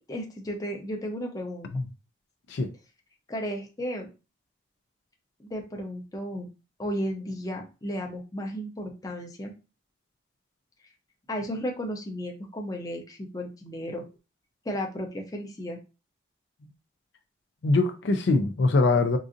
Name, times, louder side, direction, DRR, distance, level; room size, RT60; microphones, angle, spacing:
voice 1, 0.1-1.7 3.3-4.1 5.4-6.5 6.8-9.5 11.3-14.1 14.6-15.8, equal, 20° left, 0.6 m, -34 dB
voice 2, 17.6-19.2, left 3 dB, 65° left, 0.4 m, -22 dB
3.8 x 2.5 x 2.5 m
head